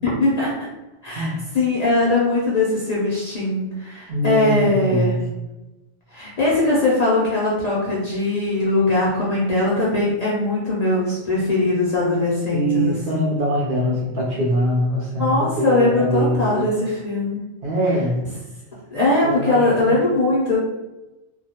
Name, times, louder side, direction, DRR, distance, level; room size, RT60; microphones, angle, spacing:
voice 1, 0.0-0.5 1.0-1.3 1.5-5.2 6.1-13.3 15.2-17.4 18.9-20.6, left 2 dB, 45° left, -6 dB, 0.5 m, -20 dB
voice 2, 1.1-1.4 4.1-5.2 12.5-16.7 17.6-18.2 19.2-20.0, right 1 dB, 60° right, -4 dB, 0.6 m, -23 dB
2.3 x 2.1 x 2.8 m, 1.0 s
omnidirectional pair, 1.2 m